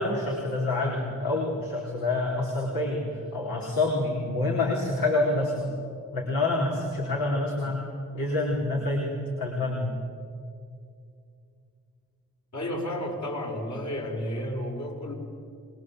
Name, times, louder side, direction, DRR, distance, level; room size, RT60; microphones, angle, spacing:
voice 1, 0.0-5.7 6.1-7.9 8.1-9.9, left 2 dB, 70° left, -2 dB, 4.5 m, -27 dB
voice 2, 12.5-15.1, left 1 dB, 50° left, 0 dB, 6.3 m, -32 dB
27.0 x 21.5 x 8.1 m, 2.4 s
supercardioid pair, 55°, 36 cm